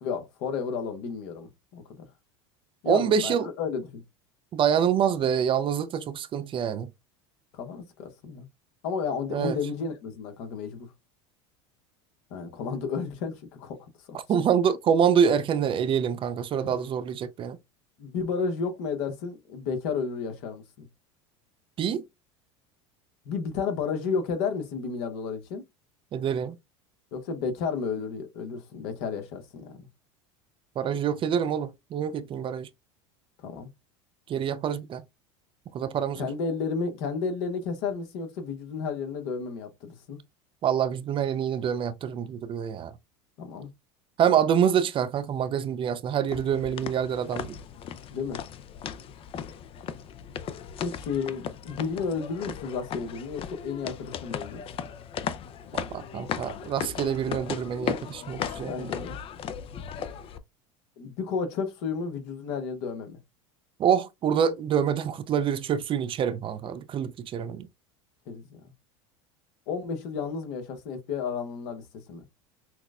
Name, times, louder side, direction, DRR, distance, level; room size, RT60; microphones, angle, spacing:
voice 1, 0.0-2.0 2.8-4.0 7.5-8.5 8.8-10.9 12.3-14.2 16.6-16.8 18.0-20.9 23.3-25.6 27.1-29.9 33.4-33.7 36.2-40.2 43.4-43.7 48.1-48.4 50.8-54.9 58.6-59.2 61.0-63.2 68.3-68.6 69.7-71.8 72.1-72.2, left 5 dB, 65° left, 1.0 m, -32 dB
voice 2, 2.9-3.5 4.5-6.9 9.3-9.6 14.3-17.6 21.8-22.0 26.1-26.6 30.8-32.7 34.3-35.0 35.7-36.3 40.6-42.9 44.2-47.6 55.7-59.0 63.8-67.7, right 8 dB, 35° right, 0.4 m, -26 dB
sound 1, 46.3-60.4, left 8 dB, 35° left, 0.4 m, -37 dB
5.8 x 2.1 x 2.4 m
hypercardioid pair, 95°, 15 cm